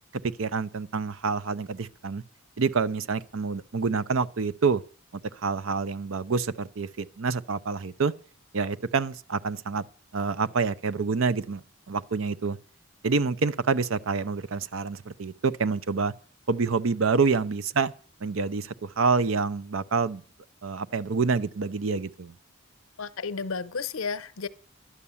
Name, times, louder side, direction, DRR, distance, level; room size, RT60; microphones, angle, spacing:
voice 1, 0.4-2.2 2.6-4.8 5.4-8.1 8.5-9.8 10.1-11.6 11.9-12.6 13.0-16.1 16.5-17.9 18.2-20.2 20.6-22.3, right 4 dB, 70° right, 0.6 m, -27 dB
voice 2, 23.0-24.5, left 5 dB, 75° left, 0.8 m, -32 dB
11.5 x 9.7 x 7.1 m
head